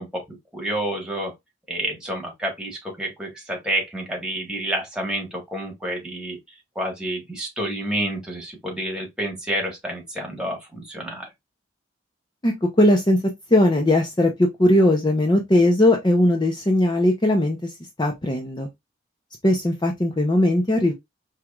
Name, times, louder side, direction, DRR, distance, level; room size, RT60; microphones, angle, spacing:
voice 1, 0.0-1.3 1.7-6.4 6.7-11.3, right 1 dB, 5° right, 1.3 m, -29 dB
voice 2, 12.4-13.2 13.5-17.7 18.0-18.7 19.4-20.9, left 1 dB, 25° left, 0.6 m, -19 dB
4.8 x 3.0 x 2.3 m
head